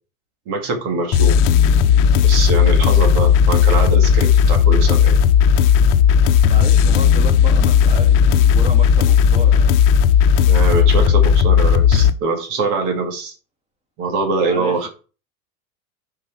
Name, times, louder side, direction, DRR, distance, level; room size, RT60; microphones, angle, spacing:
voice 1, 0.5-1.4 2.2-5.2 10.5-13.3 14.0-14.9, right 3 dB, 60° right, 2.3 m, -23 dB
sound 1, 1.1-12.1, left 7 dB, 45° left, 0.9 m, -14 dB
voice 2, 6.5-9.7 14.4-14.9, equal, 15° right, 2.4 m, -32 dB
6.5 x 4.9 x 6.1 m
hypercardioid pair, 95°, 43 cm